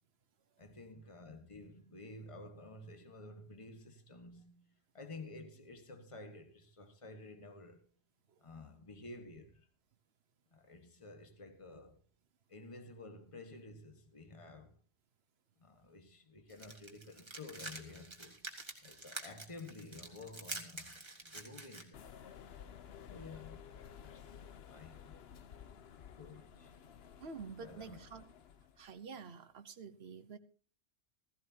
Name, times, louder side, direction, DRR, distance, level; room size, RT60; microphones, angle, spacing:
voice 1, 0.6-7.9 8.4-9.7 10.5-12.0 12.5-14.8 15.6-18.4 18.8-22.0 23.1-23.7 24.0-24.4 24.7-25.1 26.0-26.7 27.6-28.0, left 2 dB, 30° left, 1.5 m, -52 dB
sound 1, 16.5-21.8, right 2 dB, 25° right, 1.8 m, -47 dB
sound 2, 21.9-28.9, left 8 dB, 65° left, 1.0 m, -54 dB
voice 2, 27.2-28.2 28.8-30.4, right 5 dB, 65° right, 1.3 m, -48 dB
15.5 x 15.5 x 2.8 m
omnidirectional pair, 1.2 m